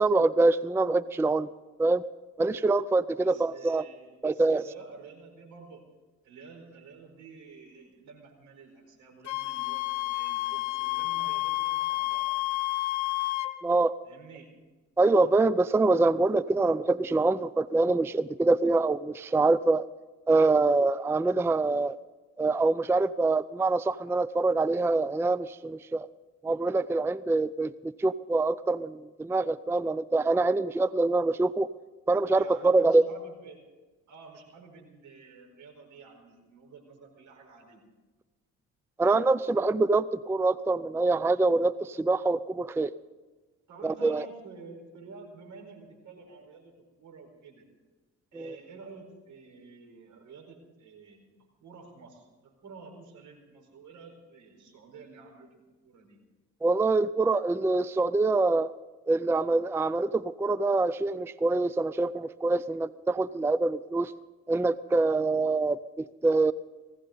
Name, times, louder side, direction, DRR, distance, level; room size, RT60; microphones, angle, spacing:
voice 1, 0.0-1.5 1.8-2.0 2.4-3.8 4.2-4.6 13.6-13.9 15.0-19.9 20.3-22.0 22.4-26.1 26.4-31.7 32.1-33.0 39.0-42.9 43.8-44.3 48.3-48.5 56.6-58.7 59.1-64.1 64.5-66.5, right 3 dB, 10° right, 17 dB, 0.4 m, -25 dB
voice 2, 3.2-5.8 6.2-12.4 14.0-14.5 32.3-33.6 34.1-37.8 43.7-46.7 47.0-47.6 48.3-51.3 51.6-56.2, right 4 dB, 80° right, 3 dB, 4.5 m, -50 dB
Wind instrument woodwind instrument, 9.2-13.5, left 18 dB, 70° left, 1.1 m, -30 dB
19.5 x 16.5 x 3.9 m, 1.3 s
cardioid pair, 90°, 30 cm